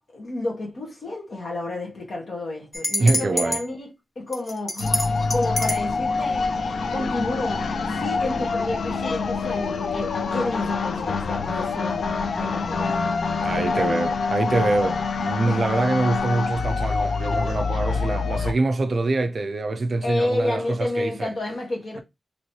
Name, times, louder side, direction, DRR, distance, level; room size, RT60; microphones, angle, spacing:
voice 1, 0.0-3.9 4.1-6.5 6.9-13.2 13.6-14.2 15.5-15.7 20.0-22.0, left 2 dB, 60° left, 1.3 m, -30 dB
sound 1, 2.7-3.6 4.3-5.9, left 1 dB, 25° left, 0.5 m, -27 dB
voice 2, 3.0-3.6 13.4-21.3, right 2 dB, 50° right, 0.4 m, -24 dB
sound 2, 4.8-18.5, left 4 dB, 80° left, 0.3 m, -26 dB
3.0 x 3.0 x 2.7 m
wide cardioid pair, 150°, 0 cm